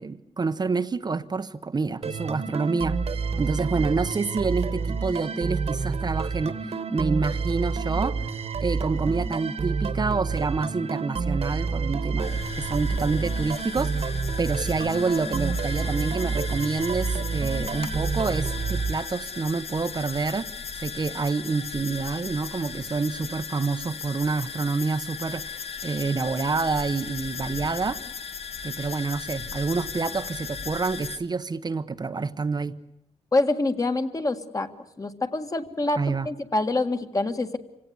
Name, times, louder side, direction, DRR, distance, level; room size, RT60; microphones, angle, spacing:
voice 1, 0.0-8.4 8.6-20.5 20.8-28.0 28.6-32.7 36.0-36.3, right 4 dB, 35° right, 0.9 m, -28 dB
sound 1, 2.0-19.6, right 4 dB, 65° right, 1.7 m, -29 dB
sound 2, 12.2-31.2, left 5 dB, 60° left, 1.8 m, -37 dB
voice 2, 33.3-34.7 35.0-37.6, left 2 dB, 30° left, 1.8 m, -26 dB
26.0 x 17.5 x 9.7 m
wide cardioid pair, 120°, 12 cm